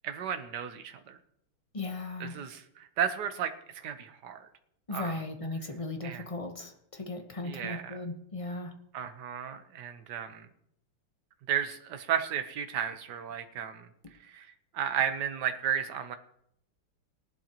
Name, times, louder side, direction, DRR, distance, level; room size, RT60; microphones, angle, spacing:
voice 1, 0.0-1.2 2.2-4.5 4.9-5.2 6.0-6.3 7.4-8.0 8.9-10.5 11.5-13.9 14.2-14.5 14.7-16.2, right 8 dB, 55° right, 8 dB, 1.5 m, -33 dB
voice 2, 1.7-2.4 4.9-8.7, left 2 dB, 25° left, 4 dB, 0.7 m, -37 dB
19.0 x 11.5 x 3.0 m, 0.73 s
omnidirectional pair, 2.4 m